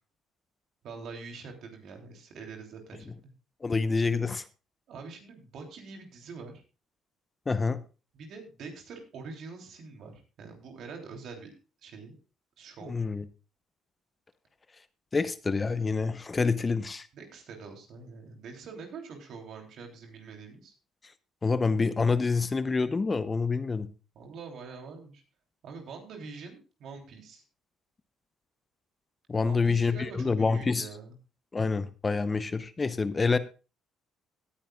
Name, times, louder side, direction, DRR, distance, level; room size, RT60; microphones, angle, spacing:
voice 1, 0.8-3.3 4.9-6.5 8.1-11.5 11.8-12.1 12.6-12.9 17.1-20.7 24.1-25.2 25.6-27.4 29.4-31.2, right 4 dB, 65° right, 3 dB, 3.2 m, -44 dB
voice 2, 3.6-4.4 7.5-7.8 12.8-13.2 15.1-17.1 21.4-23.9 29.3-30.9 31.5-33.4, left 4 dB, 30° left, 14 dB, 0.8 m, -27 dB
17.0 x 10.0 x 2.4 m, 0.33 s
supercardioid pair, 65°, 0 cm